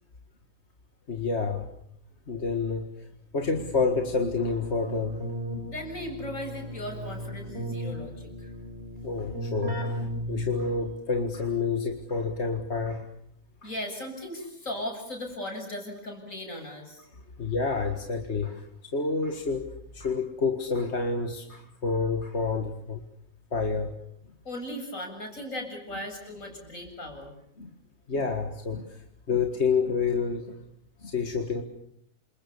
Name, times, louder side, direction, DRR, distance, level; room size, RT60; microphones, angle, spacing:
voice 1, 1.1-1.7 2.3-3.1 3.3-5.2 9.0-13.1 13.6-13.7 17.4-19.7 19.9-23.0 23.5-23.9 27.6-27.7 28.1-30.5 31.0-31.6, left 4 dB, 55° left, 5 dB, 2.1 m, -29 dB
Keyboard (musical), 3.4-11.0, equal, 50° right, 6.1 m, -36 dB
voice 2, 5.6-8.5 13.6-17.1 24.4-27.3, left 1 dB, 70° left, 2 dB, 8.1 m, -37 dB
28.5 x 27.5 x 7.1 m, 0.71 s
omnidirectional pair, 1.4 m